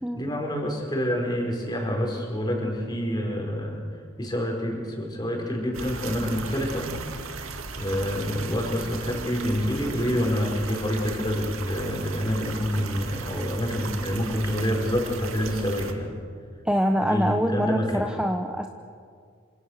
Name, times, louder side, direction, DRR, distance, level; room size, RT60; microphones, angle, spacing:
voice 1, 0.2-3.8 4.2-6.9 7.8-16.1 17.0-18.1, equal, 20° left, 1 dB, 4.9 m, -27 dB
sound 1, 5.7-15.9, right 4 dB, 75° right, 2.1 m, -37 dB
voice 2, 16.6-18.7, equal, 5° right, 4 dB, 0.9 m, -25 dB
27.5 x 26.0 x 6.6 m, 2.1 s
head